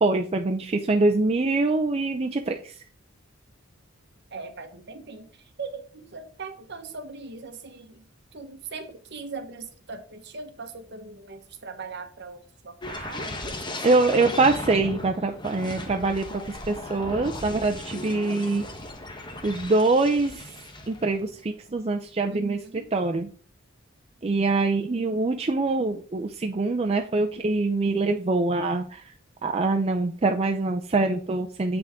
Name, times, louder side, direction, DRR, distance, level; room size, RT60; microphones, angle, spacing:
voice 1, 0.0-2.7 13.8-16.4 16.7-18.7 19.4-20.4 20.9-22.6 22.9-23.3 24.2-29.0 29.4-31.8, right 3 dB, 30° right, 0.5 m, -24 dB
voice 2, 4.3-8.1 8.3-14.3 22.3-22.9, right 4 dB, 55° right, 1.1 m, -40 dB
sound 1, 12.8-21.3 21.7-21.9, left 1 dB, 25° left, 1.0 m, -37 dB
7.8 x 6.1 x 3.6 m
head